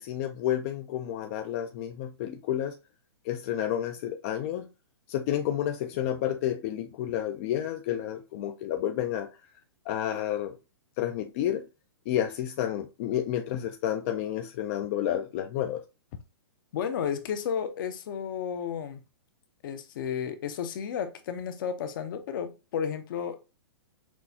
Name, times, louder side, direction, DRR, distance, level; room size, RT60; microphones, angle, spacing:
voice 1, 0.0-2.7 3.3-4.7 5.1-9.3 9.9-10.5 11.0-11.6 12.1-15.8, left 11 dB, 30° left, 0.4 m, -30 dB
voice 2, 16.7-19.0 19.6-23.4, left 7 dB, 50° left, 0.7 m, -32 dB
6.0 x 2.3 x 2.7 m
hypercardioid pair, 160°, 14 cm